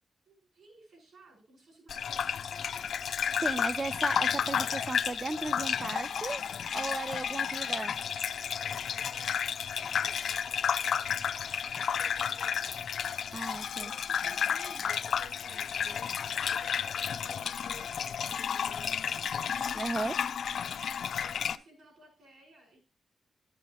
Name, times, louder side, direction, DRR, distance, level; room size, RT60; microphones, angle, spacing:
voice 1, 0.2-2.5 7.2-7.4 8.6-13.4 13.7-19.2 21.1-22.8, right 2 dB, 65° right, 0 dB, 5.0 m, -57 dB
Gurgling / Bathtub (filling or washing), 1.9-21.6, left 7 dB, 65° left, 0.4 m, -32 dB
voice 2, 3.4-6.4 6.7-7.9 13.3-13.9 19.7-20.1, right 3 dB, 25° right, 16 dB, 0.4 m, -35 dB
12.0 x 8.1 x 3.0 m, 0.28 s
wide cardioid pair, 170°, 0 cm